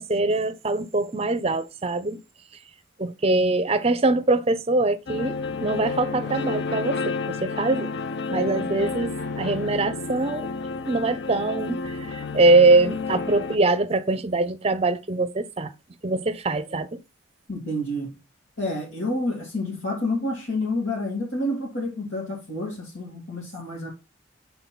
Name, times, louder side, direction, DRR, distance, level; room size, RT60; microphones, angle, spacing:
voice 1, 0.0-2.2 3.0-7.9 8.3-10.5 10.9-15.7 16.0-16.9, right 2 dB, 30° right, 0.6 m, -23 dB
sound 1, 5.1-13.6, left 4 dB, 60° left, 0.6 m, -30 dB
voice 2, 17.5-18.1 18.6-23.9, left 1 dB, 80° left, 2.5 m, -29 dB
5.4 x 4.3 x 5.8 m
head